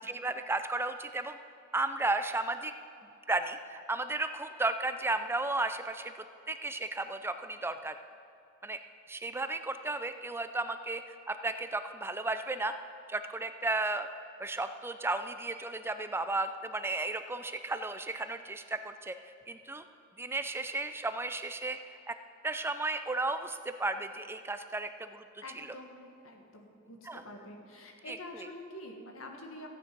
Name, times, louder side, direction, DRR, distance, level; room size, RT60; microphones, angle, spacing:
voice 1, 0.0-1.4 1.7-2.7 3.3-8.0 8.6-8.8 9.1-12.7 13.1-14.1 14.4-19.2 19.5-19.8 20.2-22.2 22.4-25.2 25.6-25.7 27.0-27.2 28.1-28.5, right 2 dB, 10° right, 9 dB, 0.4 m, -34 dB
voice 2, 25.4-29.7, left 1 dB, 85° left, 3 dB, 1.7 m, -47 dB
14.0 x 9.0 x 5.3 m, 2.5 s
head